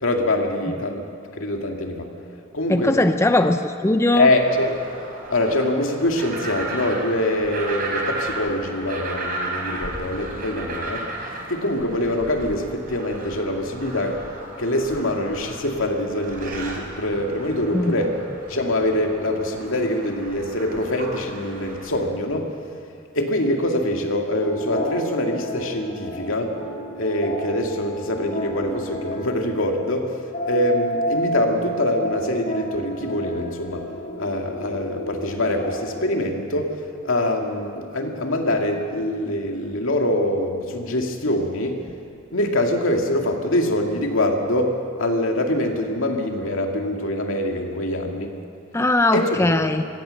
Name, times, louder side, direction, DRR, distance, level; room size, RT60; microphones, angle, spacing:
voice 1, 0.0-1.1 1.4-2.1 2.5-3.0 4.1-4.7 5.3-11.1 11.5-14.2 14.6-18.2 18.5-22.5 23.1-26.5 26.9-30.1 30.4-33.9 34.2-36.7 37.0-41.8 42.3-48.3 49.1-49.6, left 1 dB, 75° left, 2 dB, 2.4 m, -24 dB
voice 2, 2.7-4.3 17.7-17.9 48.7-49.8, left 2 dB, 15° left, 8 dB, 0.6 m, -19 dB
sound 1, 4.2-22.0, right 2 dB, 45° right, 4.2 m, -35 dB
sound 2, 24.3-36.0, right 1 dB, 40° left, 3.1 m, -31 dB
24.5 x 16.5 x 6.6 m, 2.5 s
head